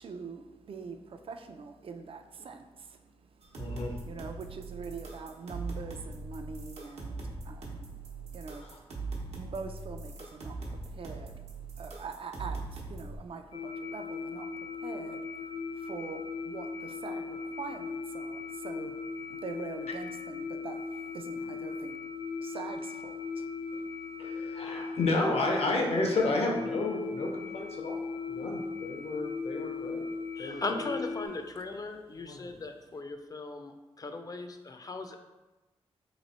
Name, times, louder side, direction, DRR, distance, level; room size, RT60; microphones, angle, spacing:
voice 1, 0.0-2.7 4.0-7.9 8.3-8.6 9.2-11.4 11.8-14.5 14.8-15.2 15.8-18.9 19.3-20.8 21.1-21.9 22.4-23.4, right 5 dB, 60° right, 7 dB, 0.4 m, -43 dB
sound 1, 3.4-13.2, right 3 dB, 80° right, 0.8 m, -41 dB
voice 2, 3.6-3.9 8.6-8.8 21.4-21.5 23.7-23.8 24.2-30.0 30.4-30.9 32.2-32.5, left 2 dB, 70° left, 1 dB, 0.8 m, -32 dB
sound 2, 13.5-31.3, left 4 dB, 85° left, 1.2 m, -38 dB
voice 3, 30.4-35.2, left 3 dB, 35° left, 6 dB, 0.5 m, -38 dB
3.1 x 2.9 x 4.1 m, 1.1 s
cardioid pair, 65°, 11 cm